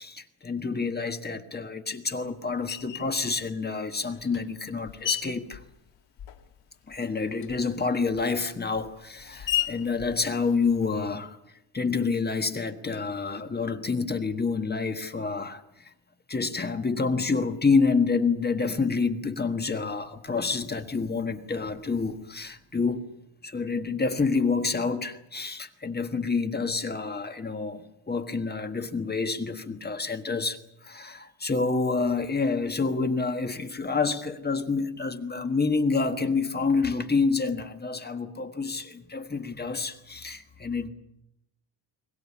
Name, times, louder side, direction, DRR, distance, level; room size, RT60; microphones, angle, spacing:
voice 1, 0.0-5.6 6.9-11.4 11.7-15.9 16.3-23.1 23.4-40.9, left 4 dB, 20° left, 1.5 m, -28 dB
Screech, 2.7-3.2 3.9-6.6 6.9-11.2, left 12 dB, 75° left, 2.4 m, -36 dB
23.0 x 20.0 x 8.5 m
cardioid pair, 150°, 45 cm